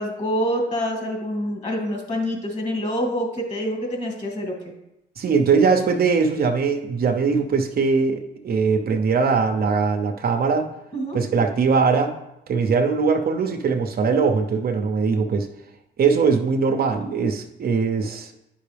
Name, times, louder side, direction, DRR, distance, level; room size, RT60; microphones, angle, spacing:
voice 1, 0.0-4.6 10.9-11.2, equal, 35° left, 0 dB, 2.5 m, -26 dB
voice 2, 5.2-10.7 11.1-12.1 12.5-15.5 16.0-18.3, right 5 dB, 50° right, 5 dB, 0.8 m, -21 dB
9.8 x 5.4 x 3.4 m, 0.89 s
cardioid pair, 90°, 20 cm